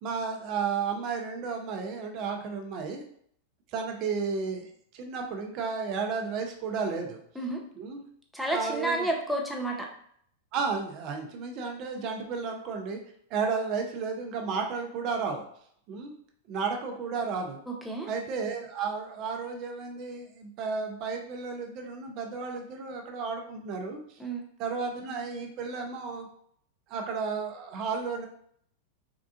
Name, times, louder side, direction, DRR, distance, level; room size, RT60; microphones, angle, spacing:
voice 1, 0.0-3.0 3.7-7.2 7.8-8.0 8.5-9.0 10.5-13.0 13.3-15.4 15.9-16.1 16.5-17.6 18.1-24.0 24.6-26.3 26.9-28.3, right 5 dB, 45° right, 3 dB, 0.6 m, -33 dB
voice 2, 8.3-9.8 17.7-18.1 24.2-24.5, right 1 dB, ahead, 0 dB, 0.7 m, -30 dB
3.7 x 2.4 x 2.4 m, 0.65 s
hypercardioid pair, 95°, 0 cm